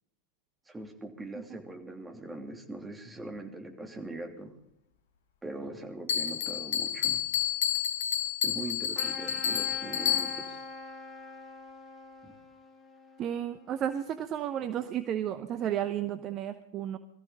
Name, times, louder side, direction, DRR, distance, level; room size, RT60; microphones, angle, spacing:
voice 1, 0.7-4.5 5.4-7.2 8.4-10.6, right 2 dB, 10° right, 3 dB, 2.8 m, -41 dB
Bell, 6.1-10.6, left 9 dB, 60° left, 1.3 m, -30 dB
Trumpet, 8.9-14.0, left 2 dB, 15° left, 3.6 m, -45 dB
voice 2, 13.2-17.0, right 10 dB, 30° right, 11 dB, 0.8 m, -33 dB
22.5 x 14.5 x 4.0 m, 0.77 s
figure-of-eight pair, 90°, 0 cm